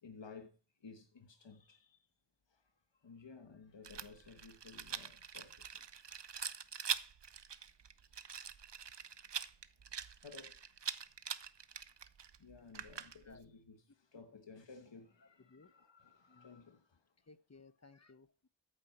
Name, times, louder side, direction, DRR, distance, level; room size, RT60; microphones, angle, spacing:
voice 1, 0.0-2.1 2.5-2.6 2.9-5.8 7.5-7.6 10.2-10.6 12.4-17.1, left 4 dB, 80° left, 1.3 m, -56 dB
Rattle, 3.8-13.4, right 7 dB, 70° right, 0.8 m, -44 dB
voice 2, 15.2-15.7 16.3-16.6 17.3-18.5, left 3 dB, 35° left, 0.9 m, -61 dB
14.0 x 8.8 x 4.4 m
wide cardioid pair, 45°, 44 cm